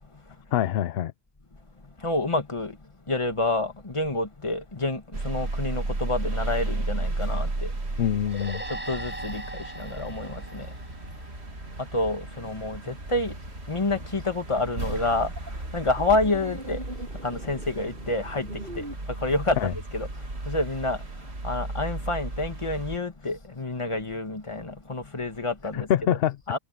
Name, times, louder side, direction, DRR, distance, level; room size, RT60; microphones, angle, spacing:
voice 1, 0.5-1.1 8.0-8.6 19.6-19.7 25.7-26.4, left 10 dB, 70° left, 0.8 m, -25 dB
voice 2, 2.0-2.7 3.1-7.7 8.9-9.4 9.8-10.7 11.9-13.3 13.7-15.3 15.7-16.8 17.2-18.5 18.8-18.9 19.2-19.6 19.9-20.1 20.5-21.0 21.4-25.9 26.5-26.6, left 2 dB, 30° left, 1.9 m, -28 dB
sound 1, 5.1-23.0, right 2 dB, 80° right, 2.8 m, -34 dB
sound 2, 8.3-11.7, right 1 dB, 10° right, 4.9 m, -39 dB
sound 3, 15.0-19.9, right 1 dB, 55° right, 6.8 m, -41 dB
omnidirectional pair, 1.1 m